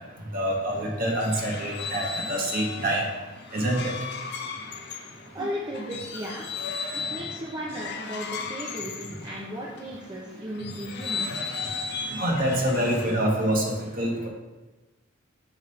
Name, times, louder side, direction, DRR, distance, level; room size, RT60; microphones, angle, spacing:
voice 1, 0.3-3.0 3.5-3.9 12.2-13.6 14.0-14.3, right 1 dB, 45° right, -1 dB, 1.3 m, -26 dB
sound 1, 0.8-9.9 10.5-13.5, left 5 dB, 55° left, 0.6 m, -36 dB
voice 2, 5.3-6.5 6.9-11.3, equal, 20° right, -5 dB, 0.7 m, -35 dB
6.4 x 5.4 x 3.2 m, 1.2 s
head